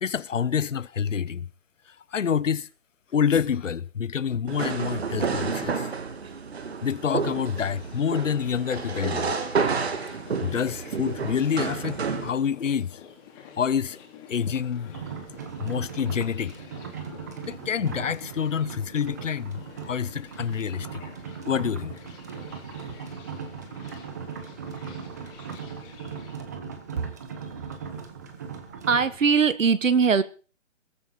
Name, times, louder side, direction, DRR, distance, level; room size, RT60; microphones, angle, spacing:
voice 1, 0.0-1.5 2.1-2.7 3.1-5.9 6.8-9.3 10.4-13.0 13.6-14.0 14.3-15.0 15.6-16.6 17.5-21.0 21.4-21.9, left 7 dB, 70° left, 1.1 m, -27 dB
sound 1, 4.5-12.3, right 5 dB, 55° right, 2.5 m, -30 dB
sound 2, 7.4-26.4, left 7 dB, 15° left, 3.5 m, -49 dB
sound 3, 14.9-29.2, right 6 dB, 15° right, 0.9 m, -39 dB
voice 2, 28.8-30.2, right 6 dB, 75° right, 1.6 m, -21 dB
21.0 x 13.5 x 4.2 m
hypercardioid pair, 170°, 39 cm